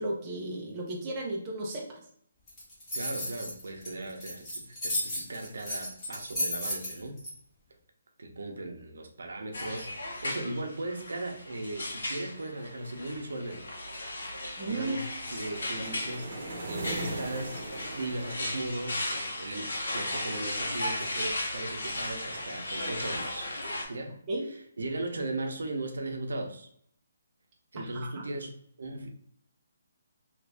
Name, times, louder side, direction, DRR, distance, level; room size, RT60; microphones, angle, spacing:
voice 1, 0.0-2.0 14.6-15.0 24.3-24.5 27.8-28.2, right 2 dB, 15° right, -3 dB, 0.5 m, -34 dB
sound 1, 2.5-7.3, left 1 dB, 15° left, 1.0 m, -34 dB
voice 2, 2.9-7.2 8.2-13.7 14.7-17.6 18.0-23.5 23.9-26.7 27.7-28.5 28.8-29.1, right 2 dB, 80° right, 4 dB, 0.7 m, -37 dB
sound 2, 9.5-23.9, left 1 dB, 85° left, 1.1 m, -36 dB
sound 3, 15.2-19.4, right 1 dB, 30° right, 0.9 m, -39 dB
2.8 x 2.6 x 3.3 m, 0.67 s
hypercardioid pair, 175°, 0 cm